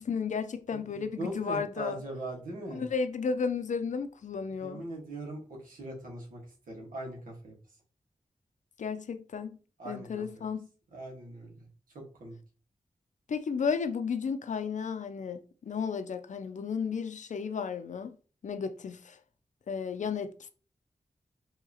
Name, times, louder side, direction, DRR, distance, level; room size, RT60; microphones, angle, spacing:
voice 1, 0.0-2.0 2.7-4.8 8.8-9.6 9.8-10.7 13.3-18.1 18.4-19.2 19.7-20.3, left 5 dB, 65° left, 0.5 m, -33 dB
voice 2, 0.7-2.8 4.5-7.5 9.8-10.4 10.9-11.7 11.9-12.4, right 1 dB, 90° right, 1.5 m, -41 dB
4.7 x 2.9 x 2.8 m
cardioid pair, 50°, 14 cm